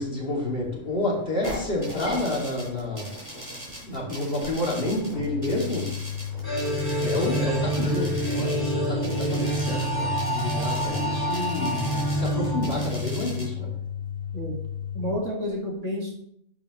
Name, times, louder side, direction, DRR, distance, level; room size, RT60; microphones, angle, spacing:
voice 1, 0.0-3.1 3.8-5.9 7.0-13.7, left 1 dB, 45° left, -4 dB, 2.6 m, -29 dB
sound 1, 1.4-13.4, equal, 25° right, 4.1 m, -39 dB
sound 2, 5.2-15.2, left 9 dB, 80° left, 1.1 m, -34 dB
sound 3, 6.4-13.4, right 1 dB, 15° left, 2.8 m, -28 dB
voice 2, 14.9-16.2, equal, 70° right, -1 dB, 2.3 m, -30 dB
10.0 x 7.7 x 3.1 m, 0.72 s
omnidirectional pair, 1.3 m